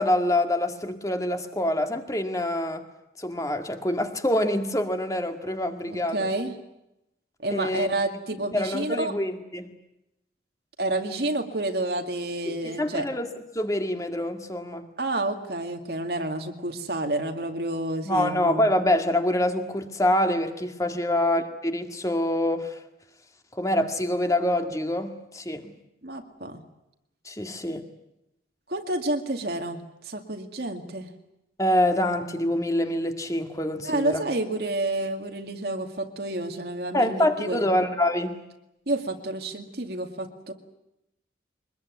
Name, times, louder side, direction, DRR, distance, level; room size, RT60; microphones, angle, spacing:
voice 1, 0.0-2.8 3.2-6.2 7.5-7.9 8.5-9.7 12.5-13.3 13.5-14.9 18.1-22.8 23.5-25.7 27.3-27.8 31.6-34.2 36.9-38.4, left 1 dB, 20° left, 6 dB, 2.0 m, -25 dB
voice 2, 5.9-6.6 7.4-9.1 10.8-13.1 15.0-18.7 20.9-21.2 26.0-26.6 28.7-31.1 33.8-37.7 38.9-40.5, right 2 dB, 60° right, 4 dB, 2.2 m, -29 dB
23.5 x 21.0 x 9.4 m, 0.87 s
head